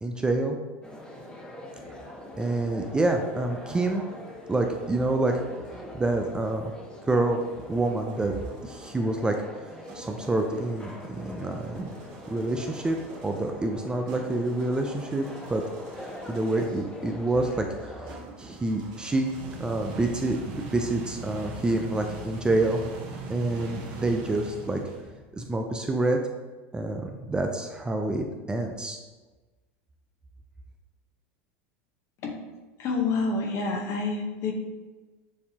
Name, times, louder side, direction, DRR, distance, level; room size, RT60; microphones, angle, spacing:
voice 1, 0.0-0.6 2.4-4.0 4.5-5.4 5.7-6.7 7.1-7.4 7.7-8.3 8.6-11.9 12.3-13.0 13.2-15.6 15.9-19.3 19.6-22.8 23.3-24.8 25.3-26.2 26.7-29.0, right 2 dB, 15° right, 4 dB, 0.4 m, -27 dB
sound 1, 0.8-18.2, left 1 dB, 15° left, 0.9 m, -43 dB
sound 2, 7.3-9.0 9.9-16.9 18.1-25.4, right 2 dB, 55° right, 1.1 m, -43 dB
voice 2, 32.8-34.5, left 4 dB, 45° left, 2 dB, 0.9 m, -28 dB
6.6 x 2.7 x 2.8 m, 1.2 s
supercardioid pair, 115°, 7 cm